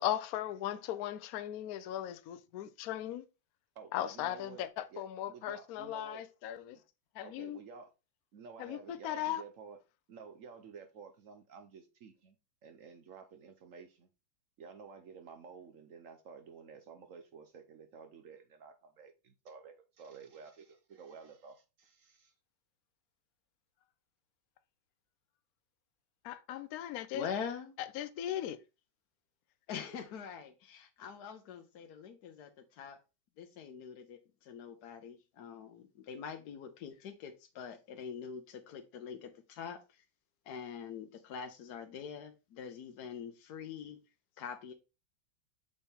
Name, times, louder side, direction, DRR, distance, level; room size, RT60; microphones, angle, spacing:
voice 1, 0.0-3.2 3.9-6.8 7.1-7.6 8.6-9.4 26.2-27.3 27.9-28.6, left 12 dB, 85° left, 0.8 m, -38 dB
voice 2, 3.7-6.2 7.2-7.9 8.3-9.8 10.1-12.4 12.6-14.1 14.6-22.3, right 6 dB, 65° right, 0.8 m, -52 dB
voice 3, 27.1-27.8 29.7-33.0 33.4-40.0 40.4-44.0 44.4-44.7, left 7 dB, 65° left, 1.1 m, -44 dB
6.8 x 4.2 x 3.5 m
omnidirectional pair, 2.2 m